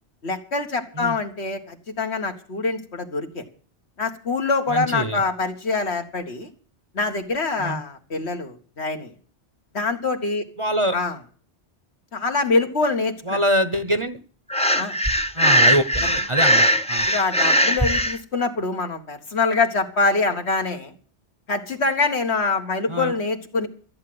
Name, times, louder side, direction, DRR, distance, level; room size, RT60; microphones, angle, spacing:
voice 1, 0.2-3.4 4.0-6.5 6.9-9.1 9.7-10.4 10.9-11.2 12.1-13.4 14.7-15.0 17.1-20.9 21.5-23.7, left 3 dB, 70° left, 5 dB, 1.9 m, -24 dB
voice 2, 4.7-5.2 7.6-7.8 10.6-11.0 13.2-14.2 15.3-17.1 22.9-23.1, equal, 30° right, 11 dB, 0.9 m, -24 dB
Breathing, 14.5-18.2, equal, 5° left, 0.6 m, -19 dB
14.0 x 8.7 x 7.8 m, 0.43 s
omnidirectional pair, 1.2 m